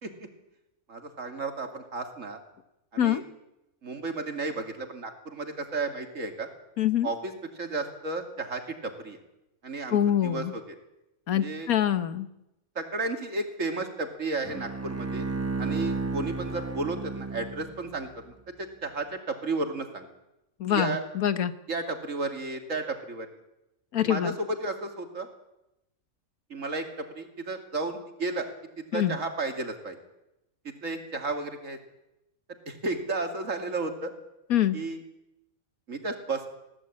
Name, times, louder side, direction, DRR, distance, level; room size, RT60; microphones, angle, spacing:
voice 1, 0.9-2.4 2.9-3.2 3.8-6.5 7.0-7.3 7.6-9.2 9.6-10.6 11.3-11.7 12.8-15.3 15.6-20.1 20.7-21.0 21.7-23.3 24.0-25.3 26.5-26.9 27.2-28.5 28.9-30.0 30.8-31.8 32.7-34.1 34.7-35.0 35.9-36.5, right 3 dB, 60° right, 5 dB, 2.9 m, -33 dB
voice 2, 6.8-7.1 9.9-10.5 11.3-12.3 20.6-21.5 23.9-24.3 28.9-29.2 34.5-34.8, left 10 dB, 80° left, 12 dB, 1.6 m, -25 dB
Bowed string instrument, 14.4-18.0, right 3 dB, 15° right, 0.7 m, -33 dB
20.5 x 17.0 x 8.6 m, 0.90 s
omnidirectional pair, 1.5 m